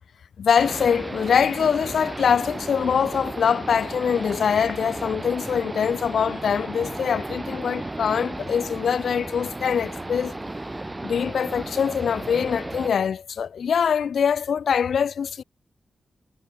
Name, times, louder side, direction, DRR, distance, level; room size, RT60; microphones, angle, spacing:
voice 1, 0.4-10.3 11.0-15.4, left 7 dB, 75° left, 0.8 m, -23 dB
sound 1, 0.6-12.9, right 2 dB, 15° right, 5.8 m, -34 dB
wide cardioid pair, 125°, 0 cm